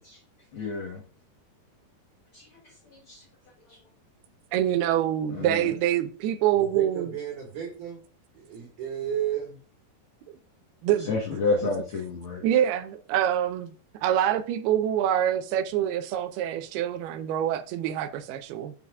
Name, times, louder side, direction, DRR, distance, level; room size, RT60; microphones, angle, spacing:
voice 1, 0.5-1.0 2.3-2.5 2.9-3.2 3.7-3.8 5.3-5.7 11.0-12.4, left 3 dB, 65° left, 1.3 m, -30 dB
voice 2, 4.5-7.1 10.8-11.1 12.4-13.7 14.0-18.7, right 11 dB, 90° right, 2.7 m, -25 dB
voice 3, 5.3-5.8 6.6-8.0 8.3-9.6, right 9 dB, 60° right, 2.9 m, -33 dB
11.0 x 5.6 x 2.4 m
omnidirectional pair, 4.4 m